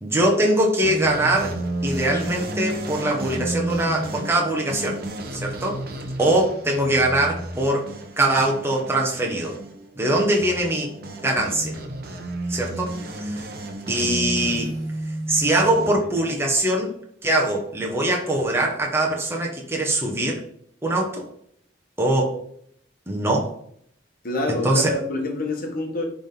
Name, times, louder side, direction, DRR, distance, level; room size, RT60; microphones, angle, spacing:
voice 1, 0.0-5.0 5.3-5.8 6.2-7.9 8.2-9.6 10.0-10.9 11.2-11.8 12.5-13.5 13.9-14.7 15.3-16.9 17.2-20.4 20.8-21.3 22.0-22.4 23.1-23.5 24.5-24.9, right 1 dB, 15° right, -1 dB, 1.3 m, -22 dB
sound 1, 0.8-15.9, right 1 dB, 55° right, 1.0 m, -32 dB
voice 2, 24.2-26.1, left 1 dB, 50° left, 2 dB, 1.4 m, -27 dB
10.0 x 3.7 x 3.9 m, 0.66 s
head